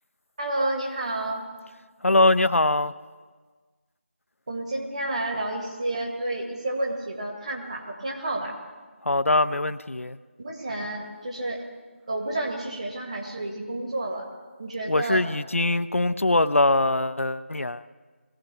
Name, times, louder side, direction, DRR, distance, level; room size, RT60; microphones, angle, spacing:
voice 1, 0.4-1.4 4.5-8.5 10.4-11.6 12.1-14.3 14.6-15.2, right 1 dB, 30° right, 0 dB, 2.1 m, -30 dB
voice 2, 2.0-2.9 9.0-10.2 14.9-17.9, left 2 dB, 80° left, 12 dB, 0.6 m, -22 dB
21.0 x 16.0 x 3.5 m, 1.4 s
figure-of-eight pair, 170°, 7 cm